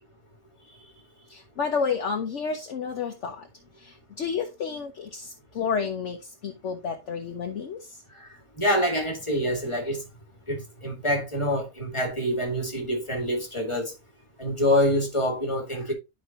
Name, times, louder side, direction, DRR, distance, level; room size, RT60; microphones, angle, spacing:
voice 1, 1.3-3.5 3.8-8.0, left 6 dB, 60° left, 1.2 m, -31 dB
voice 2, 8.6-10.0 10.5-13.9 14.4-15.9, equal, 20° left, 2.2 m, -26 dB
11.5 x 5.0 x 2.9 m
omnidirectional pair, 1.4 m